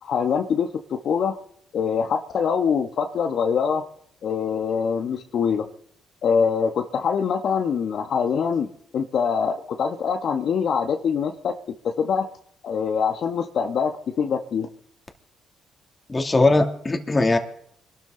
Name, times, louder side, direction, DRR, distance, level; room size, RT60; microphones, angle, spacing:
voice 1, 0.0-1.3 1.7-3.8 4.2-5.6 6.2-8.7 8.9-11.5 11.8-12.3 12.6-14.7, left 6 dB, 65° left, 5 dB, 1.3 m, -24 dB
voice 2, 16.1-17.4, left 2 dB, 25° left, 4 dB, 2.6 m, -20 dB
25.0 x 12.5 x 3.9 m, 0.67 s
cardioid pair, 90°, 0 cm